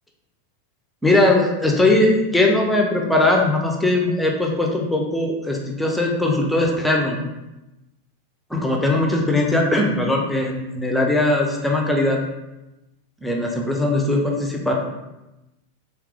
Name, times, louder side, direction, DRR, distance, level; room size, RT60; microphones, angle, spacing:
voice 1, 1.0-7.2 8.5-12.2 13.2-14.7, left 2 dB, 5° left, 0 dB, 0.6 m, -20 dB
3.3 x 3.1 x 3.5 m, 0.99 s
figure-of-eight pair, 90°, 0 cm